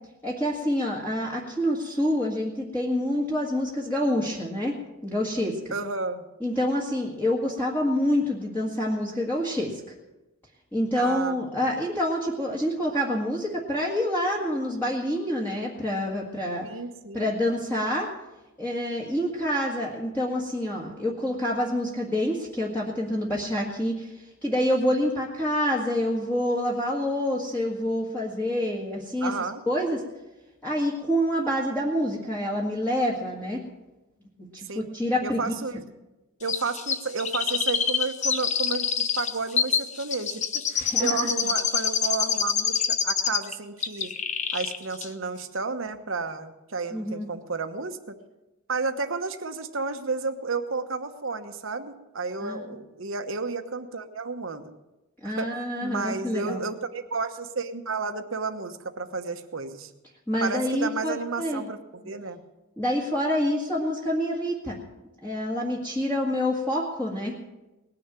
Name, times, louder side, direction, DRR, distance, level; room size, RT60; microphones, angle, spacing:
voice 1, 0.2-4.7 5.0-5.6 6.4-9.8 10.7-16.7 17.1-18.1 18.6-24.1 24.4-29.3 29.7-30.0 30.6-33.6 34.5-35.5 40.8-41.3 46.9-47.3 52.4-52.7 55.2-56.6 60.3-61.6 62.1-62.2 62.8-64.8 65.2-67.3, equal, 10° left, -5 dB, 1.7 m, -27 dB
voice 2, 5.7-6.2 10.9-11.7 16.6-17.3 29.2-29.6 34.7-34.9 35.2-35.8 36.4-38.9 39.2-44.1 44.5-48.2 48.7-54.7 55.2-55.5 55.8-59.9 60.4-62.4, right 4 dB, 60° right, 8 dB, 1.1 m, -32 dB
Chirp tweet, 36.5-43.5 43.8-44.8 45.0-45.1, left 7 dB, 30° left, 0.7 m, -26 dB
19.5 x 6.8 x 9.0 m, 1.0 s
head